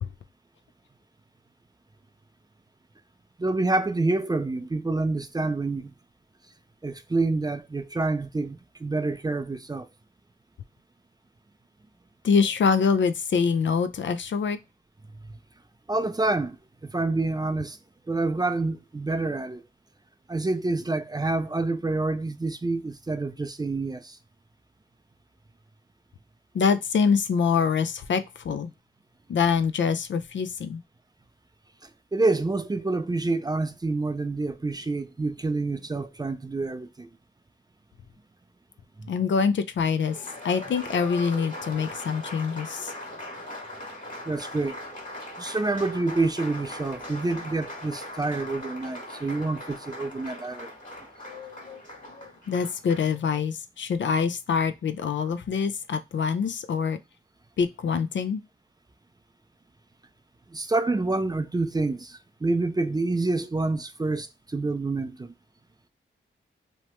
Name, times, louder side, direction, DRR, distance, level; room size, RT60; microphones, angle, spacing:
voice 1, 3.4-5.9 6.8-9.9 15.9-16.6 16.8-17.8 18.1-19.6 20.3-24.2 31.8-37.1 39.0-39.1 44.3-44.8 45.4-50.7 60.5-65.3, right 2 dB, 20° right, 0.4 m, -27 dB
voice 2, 12.2-14.6 26.5-28.7 29.3-30.8 39.1-40.2 40.4-42.9 51.3-51.8 52.1-57.0 57.6-58.4, left 6 dB, 60° left, 0.4 m, -25 dB
Applause, 39.9-53.1, left 1 dB, 40° left, 1.8 m, -40 dB
2.9 x 2.1 x 3.0 m
cardioid pair, 55°, 21 cm